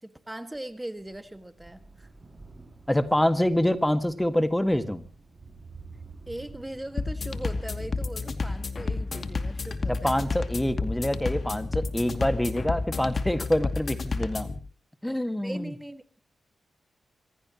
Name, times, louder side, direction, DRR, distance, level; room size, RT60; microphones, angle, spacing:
voice 1, 0.0-2.1 6.3-10.2 15.4-16.0, right 1 dB, 10° right, 10 dB, 1.8 m, -39 dB
Thunder, 0.5-13.4 14.3-14.4, right 3 dB, 35° right, 7.1 m, -51 dB
voice 2, 2.9-5.0 9.9-14.5 15.0-15.7, left 1 dB, 10° left, 10 dB, 1.9 m, -26 dB
sound 1, 7.0-14.6, left 3 dB, 55° left, 2.5 m, -31 dB
26.5 x 17.0 x 3.0 m, 0.37 s
cardioid pair, 55°, 0 cm